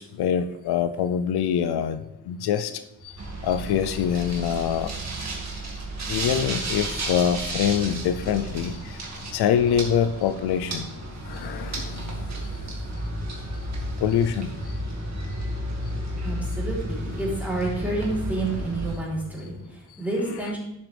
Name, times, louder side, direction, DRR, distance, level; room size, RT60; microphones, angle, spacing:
voice 1, 0.0-4.9 5.1-5.2 6.1-9.0 9.3-10.9 11.3-12.5 14.0-14.7, left 8 dB, 85° left, 11 dB, 0.6 m, -25 dB
sound 1, 3.2-18.9, right 1 dB, 45° right, 2.0 m, -32 dB
sound 2, 8.1-19.6, left 7 dB, 30° left, 3.0 m, -45 dB
voice 2, 16.2-20.6, right 2 dB, 5° right, -6 dB, 3.5 m, -29 dB
11.5 x 7.2 x 3.4 m, 0.86 s
cardioid pair, 125°, 38 cm